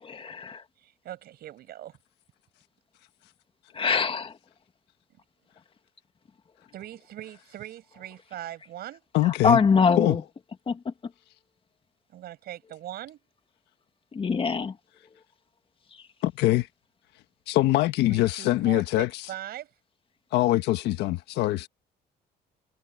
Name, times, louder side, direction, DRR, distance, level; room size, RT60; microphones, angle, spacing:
voice 1, 0.1-0.6 3.7-4.3 9.3-10.2 10.7-10.9 14.1-14.8, left 5 dB, 30° left, 2.0 m, -24 dB
voice 2, 0.8-2.0 6.7-9.0 12.1-13.2 18.0-19.7, right 13 dB, 70° right, 6.0 m, -41 dB
voice 3, 9.1-9.6 10.0-10.2 16.2-16.7 17.5-19.1 20.3-21.7, left 16 dB, 85° left, 1.5 m, -23 dB
cardioid pair, 110°, 17 cm